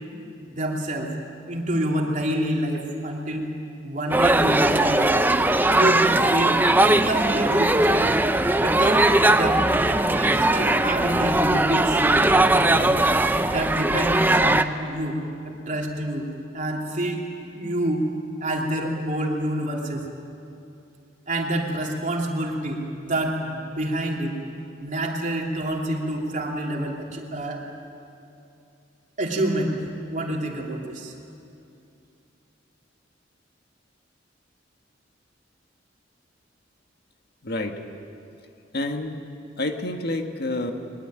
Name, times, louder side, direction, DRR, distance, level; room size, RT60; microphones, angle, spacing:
voice 1, 0.4-1.2 1.5-3.5 3.8-5.1 5.7-8.2 8.6-12.3 12.5-13.0 13.5-16.3 16.5-18.1 18.4-20.1 21.3-24.4 24.8-27.6 29.2-29.9 30.1-31.1, right 1 dB, 40° right, 0 dB, 3.2 m, -27 dB
sound 1, 4.1-14.6, right 2 dB, 10° right, 0.7 m, -20 dB
voice 2, 37.4-37.8 38.7-39.2 39.6-40.7, left 2 dB, 55° left, 5 dB, 1.6 m, -28 dB
22.0 x 21.5 x 8.9 m, 2.7 s
head